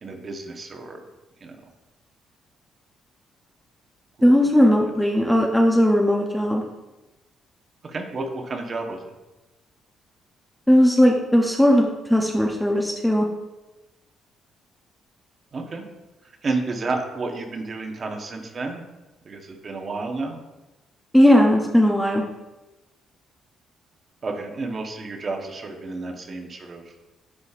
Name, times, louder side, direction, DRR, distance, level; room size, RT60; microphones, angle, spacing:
voice 1, 0.0-1.0 1.4-1.6 4.2-4.7 7.8-9.0 15.5-15.8 16.4-18.8 19.2-20.4 24.2-27.0, right 3 dB, 35° right, 2 dB, 1.0 m, -31 dB
voice 2, 4.2-6.7 10.7-13.3 21.1-22.2, equal, 5° left, 0 dB, 0.6 m, -18 dB
9.7 x 5.1 x 2.4 m, 1.1 s
cardioid pair, 135°, 0 cm